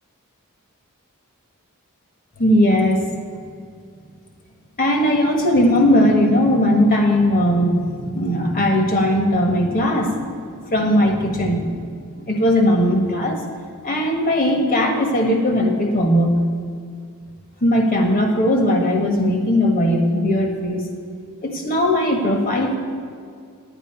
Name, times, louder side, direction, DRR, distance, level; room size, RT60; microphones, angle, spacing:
voice 1, 2.4-3.1 4.8-11.8 12.2-13.4 13.8-16.3 17.6-20.8 21.4-22.7, equal, 40° left, 2 dB, 1.4 m, -18 dB
10.5 x 9.2 x 4.4 m, 2.2 s
head